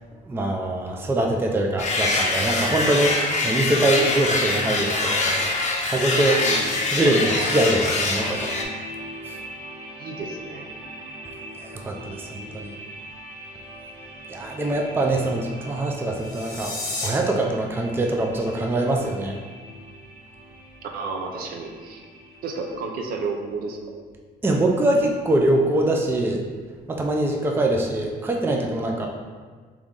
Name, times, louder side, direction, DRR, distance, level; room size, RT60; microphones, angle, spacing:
voice 1, 0.3-3.2 3.4-5.6 5.8-6.4 6.9-8.5 9.3-9.4 11.6-12.8 14.3-19.3 24.4-26.4 26.9-29.1, right 1 dB, 15° right, 1 dB, 0.4 m, -23 dB
sound 1, 1.8-8.6, left 2 dB, 45° left, 0.6 m, -24 dB
voice 2, 6.4-7.0 10.0-10.7 20.9-22.0 22.4-24.0 27.7-27.8, right 4 dB, 60° right, 2 dB, 0.6 m, -32 dB
sound 2, 8.2-22.7, right 1 dB, 85° right, 1.3 m, -41 dB
sound 3, 16.1-17.1, left 2 dB, 25° left, 1.1 m, -31 dB
3.6 x 3.1 x 3.7 m, 1.5 s
cardioid pair, 110°, 17 cm